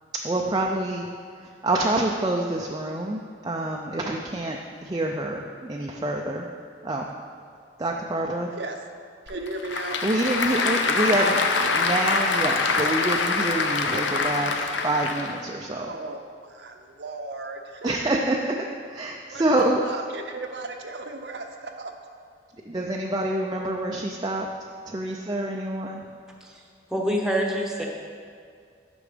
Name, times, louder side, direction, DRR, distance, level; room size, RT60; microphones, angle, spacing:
voice 1, 0.2-1.1 1.4-6.5 6.8-7.1 7.8-8.5 10.0-15.9 17.8-18.6 18.9-19.8 22.7-24.5 24.9-26.1, right 1 dB, 20° right, -1 dB, 0.5 m, -27 dB
Applause / Crowd, 9.3-15.4, left 4 dB, 85° left, 0.7 m, -25 dB
voice 2, 9.3-10.0 15.7-18.1 19.3-19.4 19.8-21.9 23.4-23.5, right 2 dB, 65° right, 3 dB, 0.8 m, -36 dB
voice 3, 26.9-27.9, equal, 5° right, 0 dB, 1.0 m, -25 dB
9.9 x 6.0 x 5.1 m, 2.2 s
head